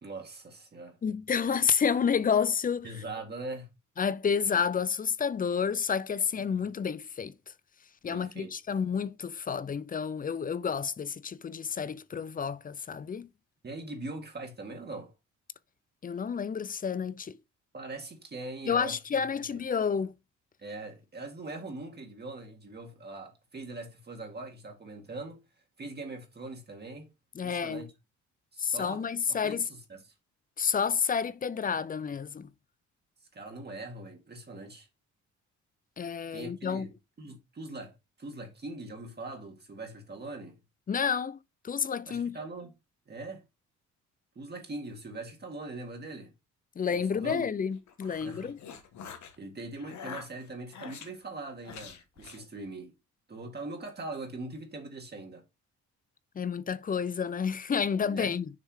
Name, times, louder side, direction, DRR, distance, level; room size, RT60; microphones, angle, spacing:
voice 1, 0.0-1.0 2.8-3.7 8.1-8.5 13.6-15.1 17.7-19.3 19.5-19.6 20.6-25.4 25.8-27.1 27.4-27.9 28.5-29.0 29.3-30.1 33.2-34.9 36.3-40.6 42.1-42.7 43.1-43.4 44.4-46.3 46.9-47.5 48.0-48.5 49.4-52.9 53.3-55.4 58.0-58.4, right 2 dB, 35° right, 1.9 m, -41 dB
voice 2, 1.0-2.9 4.0-7.3 8.0-13.3 16.0-17.3 18.7-20.1 27.4-27.9 28.6-29.7 30.6-32.5 36.0-36.9 40.9-41.4 41.6-42.4 46.8-48.6 56.4-58.5, left 6 dB, 30° left, 0.5 m, -30 dB
sound 1, 47.7-49.4 49.8-51.1 51.6-52.5, left 7 dB, 70° left, 1.5 m, -45 dB
6.7 x 3.3 x 4.8 m
cardioid pair, 90°, 30 cm